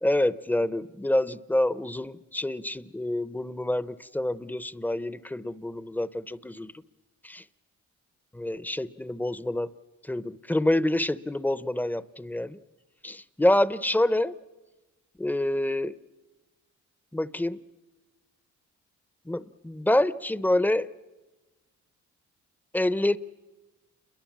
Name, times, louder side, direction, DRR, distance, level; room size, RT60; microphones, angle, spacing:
voice 1, 0.0-6.7 7.2-7.4 8.3-9.7 10.0-12.6 13.0-14.3 15.2-16.0 17.1-17.6 19.3-20.9 22.7-23.2, left 1 dB, 5° left, 17 dB, 0.7 m, -27 dB
29.0 x 22.5 x 7.4 m, 1.2 s
cardioid pair, 90°, 30 cm